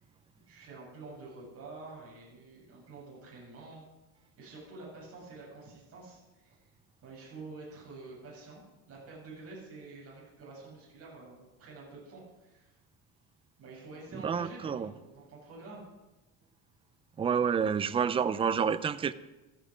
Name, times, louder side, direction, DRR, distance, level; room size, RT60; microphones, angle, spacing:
voice 1, 0.5-3.8 4.4-6.6 7.0-8.6 8.9-12.7 13.6-15.8, right 3 dB, 40° right, -5 dB, 7.0 m, -48 dB
voice 2, 14.1-14.9 17.2-19.1, right 7 dB, 15° right, 13 dB, 0.4 m, -29 dB
15.5 x 14.0 x 5.1 m, 1.1 s
cardioid pair, 160°, 36 cm